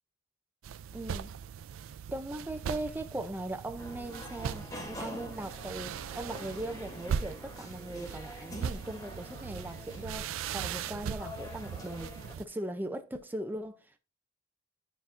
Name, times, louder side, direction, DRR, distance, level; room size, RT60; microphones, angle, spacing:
sound 1, 0.6-12.4, right 7 dB, 75° right, 0.3 m, -39 dB
voice 1, 0.9-1.3 2.1-14.0, right 1 dB, 10° right, 0.4 m, -39 dB
sound 2, 3.8-12.4, left 1 dB, 15° left, 0.9 m, -47 dB
9.2 x 4.3 x 2.5 m
head